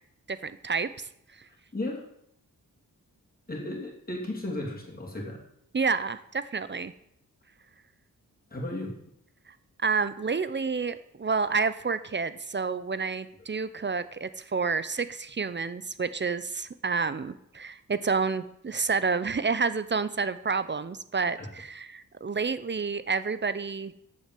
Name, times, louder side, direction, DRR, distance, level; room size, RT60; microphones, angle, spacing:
voice 1, 0.3-1.1 5.7-6.9 9.8-23.9, right 4 dB, 30° right, 14 dB, 0.5 m, -29 dB
voice 2, 1.7-2.1 3.5-5.4 8.5-8.9 21.4-21.5, left 1 dB, 25° left, -2 dB, 2.7 m, -34 dB
8.6 x 7.4 x 7.5 m, 0.74 s
wide cardioid pair, 130°, 35 cm